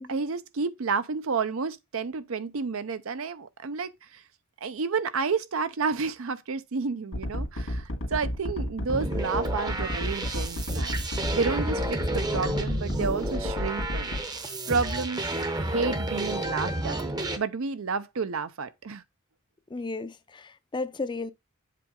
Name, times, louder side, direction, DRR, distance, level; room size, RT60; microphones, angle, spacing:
voice 1, 0.1-4.2 4.6-14.1 14.7-15.3 15.6-17.0 17.4-19.0, right 4 dB, 75° right, 0.6 m, -30 dB
sound 1, 7.1-14.2, left 1 dB, 75° left, 1.9 m, -31 dB
sound 2, 8.9-17.4, right 1 dB, 20° right, 0.7 m, -31 dB
voice 2, 19.7-21.3, left 3 dB, 20° left, 0.5 m, -34 dB
7.6 x 4.0 x 3.7 m
head